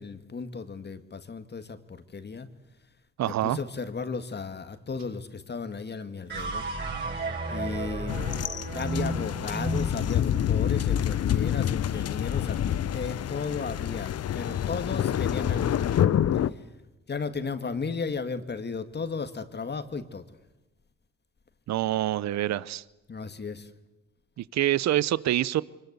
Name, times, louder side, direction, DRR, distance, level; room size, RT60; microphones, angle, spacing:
voice 1, 0.0-2.5 3.3-6.7 7.5-8.2 8.7-16.1 16.5-16.6 17.1-20.3 23.1-23.7, left 4 dB, 35° left, 10 dB, 1.9 m, -35 dB
voice 2, 3.2-3.6 21.7-22.8 24.4-25.6, right 13 dB, 65° right, 19 dB, 0.8 m, -26 dB
sound 1, 6.3-12.7, right 2 dB, 35° right, 6.7 m, -34 dB
sound 2, 8.1-16.5, left 10 dB, 55° left, 0.9 m, -27 dB
24.5 x 22.0 x 8.3 m, 1.0 s
cardioid pair, 90°, 30 cm